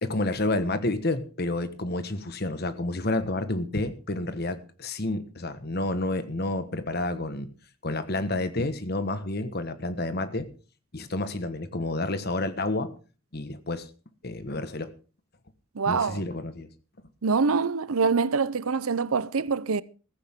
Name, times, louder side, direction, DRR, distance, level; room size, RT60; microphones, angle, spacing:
voice 1, 0.0-7.5 7.8-10.5 10.9-12.9 13.3-13.9 14.2-14.9 15.8-16.7, left 2 dB, 45° left, 1.4 m, -29 dB
voice 2, 15.8-16.2 17.2-19.8, right 5 dB, 85° right, 0.7 m, -25 dB
15.0 x 15.0 x 3.7 m
head